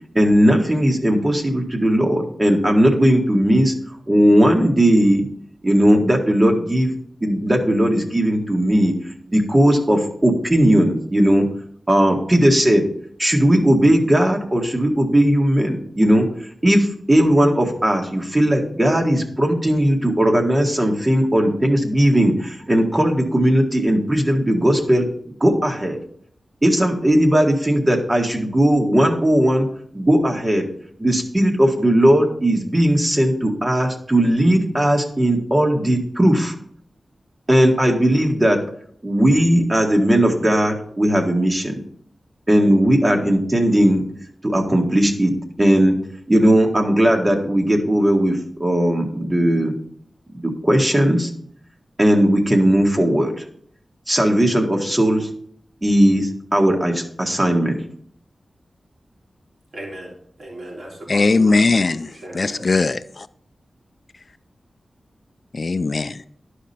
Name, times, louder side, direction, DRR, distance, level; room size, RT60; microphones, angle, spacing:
voice 1, 0.2-3.7 4.1-5.3 5.6-6.9 7.2-8.9 9.3-11.5 11.9-12.8 13.2-16.3 16.6-25.1 25.4-26.0 26.6-29.7 29.9-30.7 31.0-36.5 37.5-38.6 39.0-41.8 42.5-44.0 44.4-45.3 45.6-46.0 46.3-49.8 50.3-51.3 52.0-53.4 54.1-55.3 55.8-57.8, right 1 dB, 25° right, 1.7 m, -17 dB
voice 2, 59.7-60.1 60.4-62.7, right 1 dB, 65° right, 3.5 m, -36 dB
voice 3, 61.1-62.1 62.3-63.3 65.6-66.3, left 3 dB, 55° left, 0.4 m, -19 dB
11.5 x 5.1 x 4.2 m
wide cardioid pair, 65°, 0 cm